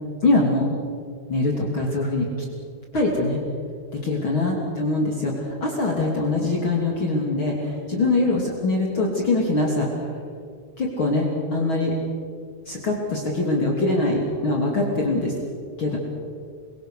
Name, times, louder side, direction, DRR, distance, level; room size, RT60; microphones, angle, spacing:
voice 1, 0.2-0.7 1.3-2.3 2.9-3.4 3.9-10.1 10.8-11.9 12.7-15.3 15.8-16.0, left 2 dB, 40° left, -1 dB, 3.6 m, -23 dB
28.0 x 23.0 x 6.5 m, 2.2 s
omnidirectional pair, 3.6 m